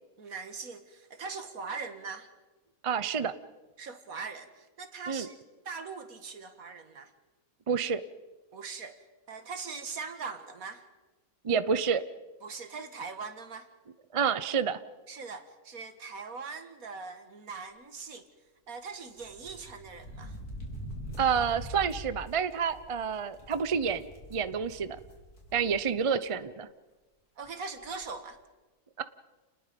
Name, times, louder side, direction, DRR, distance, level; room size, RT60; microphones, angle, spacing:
voice 1, 0.2-2.3 3.8-5.4 5.7-7.1 8.5-10.9 12.4-13.7 15.1-18.3 18.7-20.4 27.4-28.4, right 5 dB, 65° right, 8 dB, 2.1 m, -41 dB
voice 2, 2.8-3.3 5.1-5.3 7.7-8.0 11.4-12.0 14.1-14.8 21.2-25.0 25.5-26.7 29.0-29.1, right 6 dB, 30° right, 13 dB, 0.6 m, -29 dB
sound 1, 19.2-25.9 26.2-26.3 27.4-27.5 27.8-28.0, equal, 75° left, 4.4 m, -44 dB
29.0 x 20.0 x 5.3 m, 1.2 s
omnidirectional pair, 1.6 m